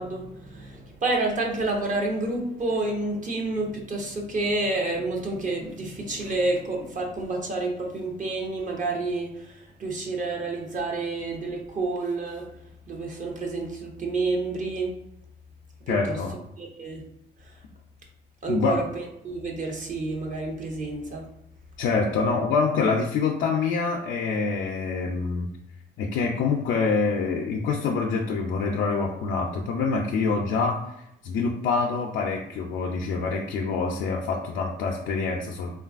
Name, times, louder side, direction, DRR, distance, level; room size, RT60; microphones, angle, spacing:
voice 1, 0.0-12.5 12.9-14.9 15.9-16.2 16.6-17.0 17.4-17.6 18.4-21.2, right 2 dB, 40° right, 0 dB, 0.7 m, -29 dB
voice 2, 15.9-16.4 18.5-18.8 21.8-25.5 26.0-30.8 31.2-35.7, left 4 dB, 75° left, -1 dB, 0.4 m, -25 dB
3.1 x 2.3 x 2.4 m, 0.79 s
cardioid pair, 90°, 20 cm